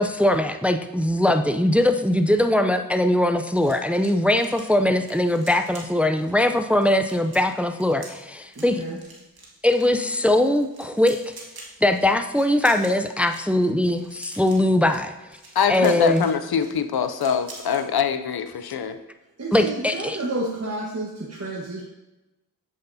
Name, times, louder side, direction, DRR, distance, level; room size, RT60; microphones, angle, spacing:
voice 1, 0.0-8.8 9.6-11.3 11.8-15.1 15.7-16.3 19.5-20.2, left 1 dB, 5° right, 7 dB, 0.5 m, -21 dB
sound 1, 2.6-17.8 18.2-18.4 18.7-19.0, right 2 dB, 80° right, 1.7 m, -47 dB
voice 2, 8.5-9.0 19.4-21.8, right 2 dB, 45° right, -3 dB, 1.3 m, -30 dB
voice 3, 15.5-19.0, left 7 dB, 90° left, 10 dB, 0.6 m, -23 dB
7.9 x 7.7 x 2.7 m, 1.0 s
cardioid pair, 40°, 36 cm